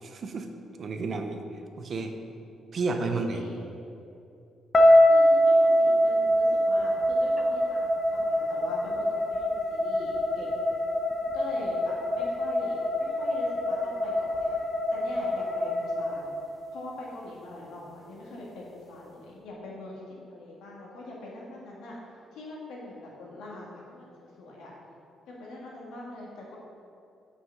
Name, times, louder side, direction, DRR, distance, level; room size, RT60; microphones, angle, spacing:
voice 1, 0.0-0.5 0.8-1.4 1.8-2.1 2.7-3.4, right 3 dB, 50° right, 6 dB, 0.7 m, -31 dB
voice 2, 2.9-3.7 5.0-10.5 11.3-14.5 14.9-16.4 16.7-22.0 22.3-24.7 25.4-26.6, left 2 dB, 85° left, -3 dB, 1.9 m, -42 dB
sound 1, 4.7-16.9, equal, 35° left, 1.0 m, -24 dB
5.6 x 5.6 x 6.6 m, 2.6 s
cardioid pair, 90°, 0 cm